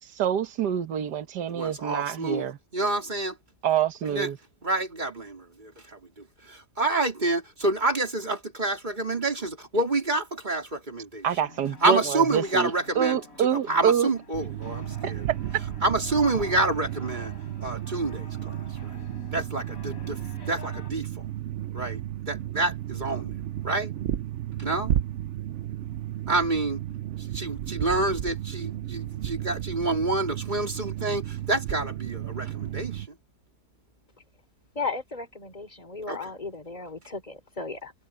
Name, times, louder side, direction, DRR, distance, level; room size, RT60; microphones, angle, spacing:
voice 1, 0.0-2.6 3.6-4.4 11.2-14.1 15.0-15.4, right 9 dB, 80° right, 1.7 m, -26 dB
voice 2, 1.5-2.5 2.7-3.4 4.0-4.3 4.6-11.3 11.8-15.2 15.8-17.3 17.6-18.6 18.8-19.0 19.3-20.2 20.5-21.1 21.7-22.0 22.3-23.3 23.6-23.9 24.6-24.9 26.3-26.8 27.2-33.2 36.1-36.3, right 2 dB, 25° right, 3.6 m, -28 dB
sound 1, 11.4-20.9, left 2 dB, 55° left, 6.0 m, -46 dB
sound 2, 14.3-33.1, right 12 dB, 60° right, 0.8 m, -33 dB
voice 3, 34.8-37.9, left 4 dB, 25° left, 3.6 m, -35 dB
omnidirectional pair, 1.8 m